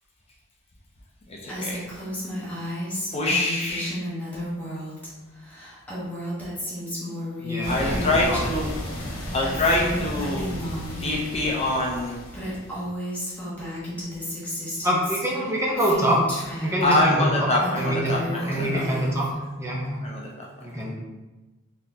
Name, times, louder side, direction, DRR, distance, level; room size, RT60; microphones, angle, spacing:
voice 1, 1.3-1.8 3.1-4.0 7.6-8.7 9.3-10.5 11.0-12.2 16.8-18.8 20.0-20.5, left 2 dB, 30° left, -2 dB, 0.6 m, -25 dB
Female speech woman speaking, 1.5-5.1 5.4-8.7 8.9-11.3 12.0-12.1 12.3-17.0 17.4-19.3, equal, 10° left, 1.2 m, -33 dB
voice 2, 7.4-8.4 14.8-16.2 16.6-17.5 17.8-18.1 18.5-19.3 19.6-20.1 20.6-20.9, equal, 15° right, -4 dB, 0.8 m, -25 dB
sound 1, 7.6-12.9, equal, 85° left, 1.0 m, -34 dB
4.1 x 3.7 x 2.7 m, 1.1 s
head